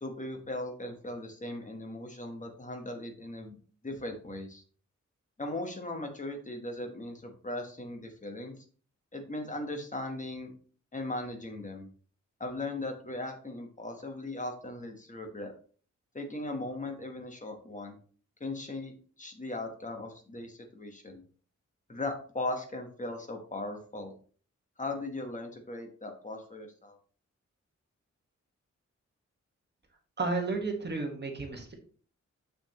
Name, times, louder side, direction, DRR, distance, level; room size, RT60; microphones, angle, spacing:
voice 1, 0.0-3.6 3.8-4.6 5.4-8.5 9.1-10.5 10.9-11.9 12.4-15.5 16.1-18.0 18.4-21.2 21.9-24.1 24.8-27.0, left 2 dB, 25° left, 4 dB, 1.2 m, -38 dB
voice 2, 30.2-31.7, right 3 dB, 35° right, 2 dB, 1.4 m, -32 dB
6.9 x 6.0 x 2.9 m, 0.42 s
wide cardioid pair, 160°, 29 cm